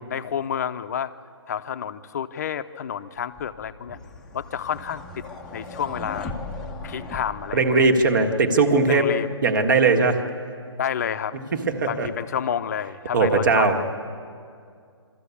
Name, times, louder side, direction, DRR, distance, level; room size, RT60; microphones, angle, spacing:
voice 1, 0.1-1.1 1.5-4.0 4.3-5.2 5.5-6.4 6.8-7.9 8.9-9.3 10.8-11.4 11.9-13.8, left 8 dB, 35° left, 11 dB, 0.7 m, -29 dB
sound 1, 3.4-8.3, left 3 dB, 5° left, 0.8 m, -38 dB
voice 2, 7.5-10.2 11.5-12.1 13.1-13.8, right 3 dB, 45° right, 5 dB, 1.8 m, -19 dB
23.0 x 14.0 x 8.4 m, 2.3 s
hypercardioid pair, 160°, 15 cm